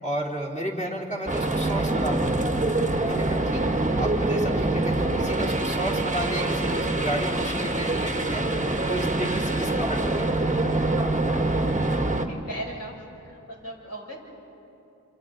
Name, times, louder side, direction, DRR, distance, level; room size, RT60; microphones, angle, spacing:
voice 1, 0.0-2.5 3.0-3.6 4.0-8.5 8.8-10.3, right 1 dB, 25° left, -3 dB, 3.4 m, -32 dB
sound 1, 1.3-12.3, right 2 dB, 25° right, 1.3 m, -25 dB
voice 2, 12.3-12.9 13.2-14.2, right 1 dB, 55° left, -3 dB, 5.6 m, -37 dB
28.0 x 27.5 x 3.9 m, 2.9 s
wide cardioid pair, 65°, 31 cm